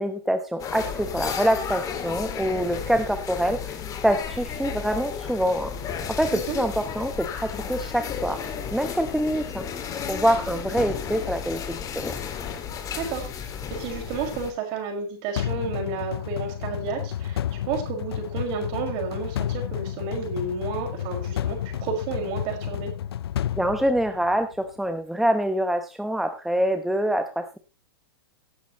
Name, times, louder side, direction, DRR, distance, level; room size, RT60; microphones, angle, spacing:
voice 1, 0.0-5.7 6.1-8.4 8.7-9.7 10.0-12.1 23.5-27.6, equal, ahead, 7 dB, 1.0 m, -25 dB
sound 1, 0.6-14.5, left 7 dB, 25° left, 2.2 m, -33 dB
voice 2, 13.0-22.9, right 4 dB, 45° right, 4 dB, 5.4 m, -31 dB
sound 2, 15.4-24.5, left 10 dB, 80° left, 0.5 m, -31 dB
17.5 x 9.3 x 3.0 m, 0.28 s
hypercardioid pair, 125°, 13 cm